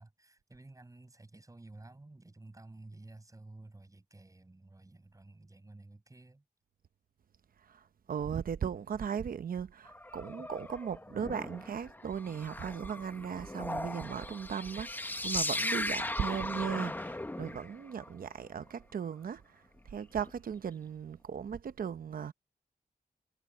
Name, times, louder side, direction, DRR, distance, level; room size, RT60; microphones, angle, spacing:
voice 1, 0.0-6.4 10.4-10.5, right 2 dB, 20° right, 7.5 m, -53 dB
voice 2, 7.6-22.3, right 7 dB, 75° right, 0.9 m, -37 dB
sound 1, 9.9-18.1 20.2-20.3, left 1 dB, 10° left, 0.9 m, -38 dB
wide cardioid pair, 100°, 15 cm